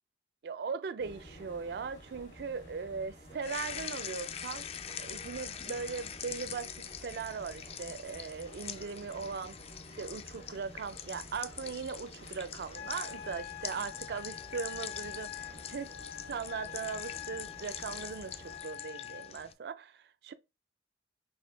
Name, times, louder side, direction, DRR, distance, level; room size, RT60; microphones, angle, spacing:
voice 1, 0.4-4.7 5.0-9.6 10.0-15.9 16.3-20.3, right 5 dB, 60° right, 0.4 m, -39 dB
sound 1, 1.0-18.6, equal, 85° left, 2.1 m, -52 dB
sound 2, 3.4-19.5, left 9 dB, 35° left, 0.3 m, -44 dB
Wind instrument woodwind instrument, 12.7-19.3, left 13 dB, 60° left, 0.7 m, -45 dB
6.2 x 2.6 x 3.2 m
head